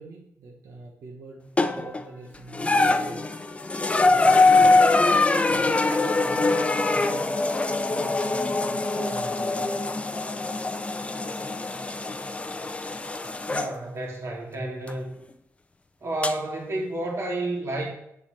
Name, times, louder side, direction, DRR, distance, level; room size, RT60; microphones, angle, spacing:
voice 1, 0.0-3.2 4.0-4.8 5.5-7.3 7.9-9.8, right 3 dB, 75° right, -3 dB, 1.2 m, -42 dB
sound 1, 1.6-2.0 2.5-13.7 14.9-15.0 16.2-16.3, left 3 dB, 20° left, 0.5 m, -23 dB
voice 2, 13.5-15.1 16.0-17.9, right 2 dB, 50° right, -2 dB, 2.4 m, -30 dB
7.1 x 4.2 x 6.5 m, 0.78 s
cardioid pair, 90°, 6 cm